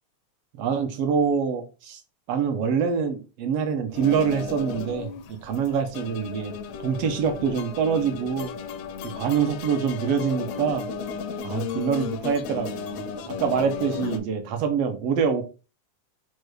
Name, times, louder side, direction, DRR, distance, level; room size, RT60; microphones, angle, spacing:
voice 1, 0.6-2.0 2.3-6.5 6.8-8.5 9.0-10.8 11.4-15.4, right 6 dB, 80° right, 1.4 m, -25 dB
sound 1, 3.9-14.2, left 6 dB, 80° left, 1.7 m, -34 dB
6.3 x 2.2 x 3.1 m
omnidirectional pair, 3.5 m